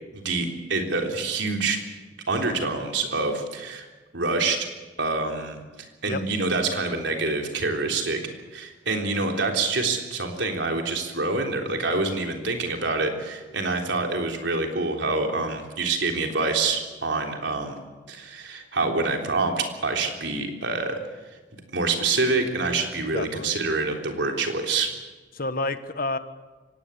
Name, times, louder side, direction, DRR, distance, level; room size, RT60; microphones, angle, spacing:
voice 1, 0.1-1.8 2.3-3.8 4.1-4.7 5.0-5.6 6.0-8.2 8.5-17.8 18.1-21.0 21.7-24.9, right 3 dB, 75° right, 3 dB, 3.6 m, -26 dB
voice 2, 23.0-23.6 25.3-26.2, left 2 dB, 50° left, 11 dB, 1.2 m, -30 dB
24.5 x 18.0 x 8.4 m, 1.3 s
head